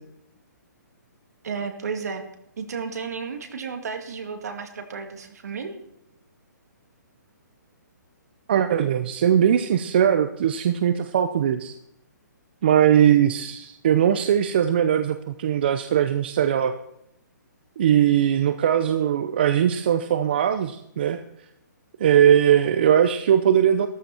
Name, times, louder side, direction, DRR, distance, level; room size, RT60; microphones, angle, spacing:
voice 1, 1.4-2.2 2.6-5.8, right 5 dB, 60° right, 6 dB, 2.5 m, -32 dB
voice 2, 8.5-11.7 12.6-16.7 17.8-21.2 22.0-23.9, right 9 dB, 35° right, 9 dB, 0.7 m, -20 dB
14.0 x 13.5 x 4.5 m, 0.79 s
hypercardioid pair, 175°, 10 cm